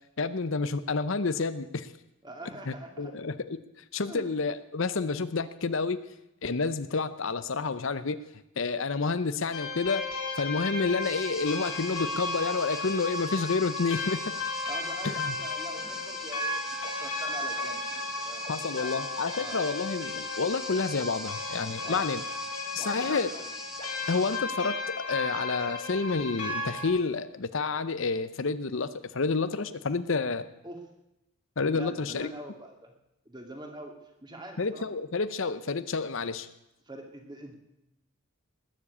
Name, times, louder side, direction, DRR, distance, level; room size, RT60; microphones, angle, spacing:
voice 1, 0.2-1.9 2.7-3.6 3.9-6.0 6.4-8.2 8.6-10.1 10.4-14.3 15.0-15.4 18.5-22.2 22.7-23.3 24.1-30.5 31.6-32.3 34.6-36.5, left 4 dB, 60° left, 13 dB, 0.7 m, -29 dB
voice 2, 2.2-3.1 4.1-4.3 14.6-18.5 18.8-19.0 19.3-19.7 21.8-22.1 22.8-23.5 30.6-30.8 31.7-32.9 33.3-33.9 34.2-34.8 36.9-37.5, right 1 dB, 20° right, 3 dB, 2.3 m, -44 dB
sound 1, 9.5-26.9, left 3 dB, 90° left, 3.4 m, -35 dB
sound 2, 11.0-24.4, equal, ahead, 1.3 m, -43 dB
sound 3, 16.8-16.9 17.6-17.7 18.4-18.6 19.2-19.4 20.1-20.2 21.0-21.1 21.8-21.9 22.8-22.9 23.8-23.9, left 3 dB, 30° left, 1.4 m, -46 dB
19.5 x 7.6 x 8.5 m, 0.88 s
head